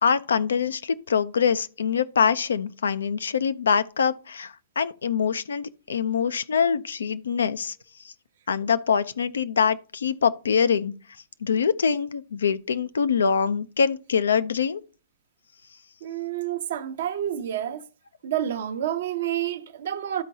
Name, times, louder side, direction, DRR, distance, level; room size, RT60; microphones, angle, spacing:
voice 1, 0.0-7.7 8.0-8.1 8.5-10.9 11.4-14.8, left 6 dB, 75° left, 0.5 m, -24 dB
voice 2, 16.0-17.8 18.2-20.2, right 11 dB, 60° right, 0.8 m, -29 dB
12.5 x 4.5 x 2.7 m
hypercardioid pair, 115°, 0 cm